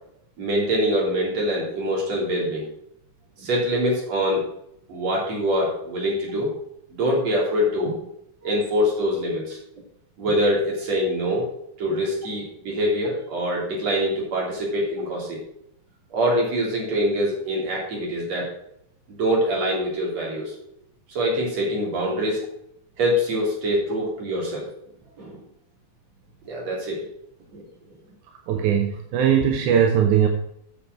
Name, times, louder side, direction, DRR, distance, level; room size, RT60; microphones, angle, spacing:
voice 1, 0.4-2.7 3.4-4.5 4.9-6.5 6.9-8.1 8.4-9.6 10.2-11.5 11.8-15.4 16.1-18.5 19.2-20.5 21.1-22.4 23.0-24.7 25.2-25.4 26.5-27.0 27.5-27.6, equal, 60° right, -3 dB, 4.5 m, -24 dB
voice 2, 28.5-30.3, right 8 dB, 85° right, 3 dB, 2.5 m, -19 dB
8.4 x 7.2 x 6.2 m, 0.75 s
omnidirectional pair, 3.4 m